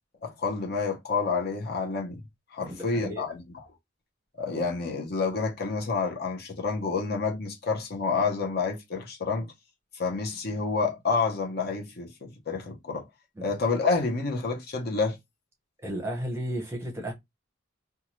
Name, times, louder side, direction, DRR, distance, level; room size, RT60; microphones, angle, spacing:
voice 1, 0.2-2.2 2.5-3.4 4.4-9.5 9.9-13.1 13.4-15.2, left 4 dB, 50° left, 0.7 m, -29 dB
voice 2, 2.6-3.4 13.4-13.5 15.8-17.1, equal, 15° right, 0.7 m, -34 dB
2.7 x 2.3 x 3.0 m
head